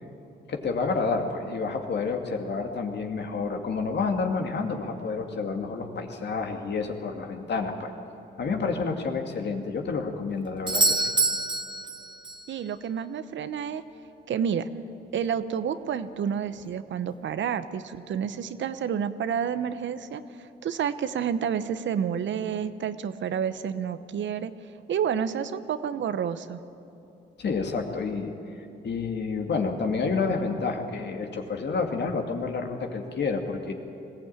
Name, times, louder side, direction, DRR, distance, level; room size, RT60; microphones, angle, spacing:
voice 1, 0.5-7.9 8.4-11.0 27.4-33.7, left 4 dB, 60° left, 4 dB, 2.3 m, -29 dB
Doorbell, 10.7-12.5 16.6-16.7, right 3 dB, 25° right, 1.3 m, -26 dB
voice 2, 12.5-13.8 14.3-14.7 15.1-24.5 24.9-26.6, right 8 dB, 70° right, 12 dB, 0.9 m, -29 dB
20.5 x 15.5 x 8.9 m, 2.8 s
cardioid pair, 65°, 20 cm